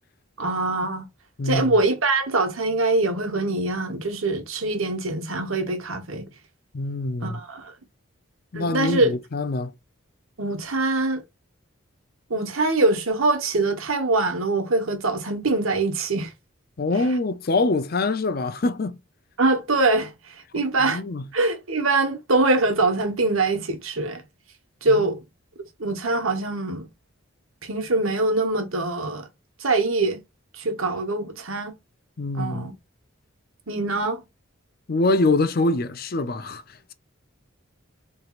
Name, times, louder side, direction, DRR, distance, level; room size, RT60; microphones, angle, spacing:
voice 1, 0.4-1.1 1.4-6.3 7.2-7.7 8.5-9.2 10.4-11.2 12.3-16.3 19.4-21.0 21.3-24.2 24.8-25.2 25.8-26.9 27.6-29.3 29.6-30.2 30.6-31.7 32.3-32.7 33.7-34.2, right 2 dB, 80° right, 1.2 m, -23 dB
voice 2, 1.4-1.8 6.7-7.4 8.5-9.7 16.8-19.0 20.8-21.3 24.9-25.1 32.2-32.7 34.9-36.6, left 2 dB, 45° left, 0.5 m, -24 dB
4.4 x 3.3 x 2.4 m
head